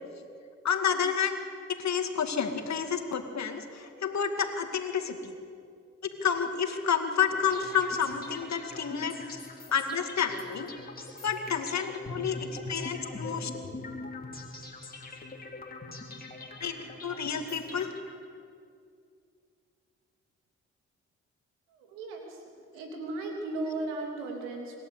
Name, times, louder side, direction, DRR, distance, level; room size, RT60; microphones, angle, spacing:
voice 1, 0.6-1.4 1.7-5.3 6.0-9.4 9.7-10.7 11.2-13.5 16.6-16.8 17.0-17.9, left 7 dB, 55° left, 6 dB, 2.3 m, -30 dB
sound 1, 7.3-18.4, left 2 dB, 25° left, 3.5 m, -43 dB
voice 2, 21.7-22.4 22.7-24.8, right 2 dB, 85° right, 2 dB, 2.9 m, -36 dB
26.5 x 12.5 x 8.3 m, 2.3 s
hypercardioid pair, 40°, 33 cm